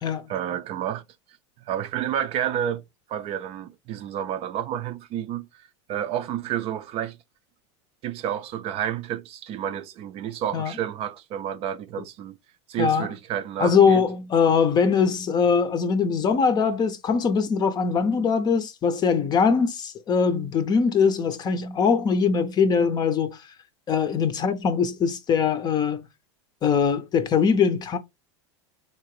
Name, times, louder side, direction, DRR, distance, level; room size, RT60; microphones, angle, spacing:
voice 1, 0.3-1.0 1.7-2.8 3.1-5.5 5.9-7.2 8.0-12.4 12.7-14.0, right 10 dB, 40° right, 0.5 m, -30 dB
voice 2, 12.8-13.1 13.6-23.4 23.9-26.1 26.6-28.0, left 6 dB, 25° left, 0.6 m, -22 dB
4.1 x 2.9 x 3.1 m
supercardioid pair, 120°, 15 cm